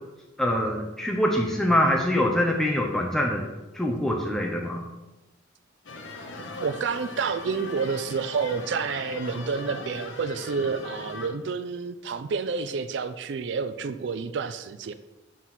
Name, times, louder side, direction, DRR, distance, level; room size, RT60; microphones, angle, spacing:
voice 1, 0.4-3.5 3.7-4.9, left 1 dB, ahead, -1 dB, 0.6 m, -24 dB
sound 1, 5.9-11.3, left 2 dB, 70° left, 1.0 m, -39 dB
voice 2, 6.6-14.9, right 5 dB, 60° right, 10 dB, 0.4 m, -29 dB
5.9 x 4.1 x 6.2 m, 1.0 s
head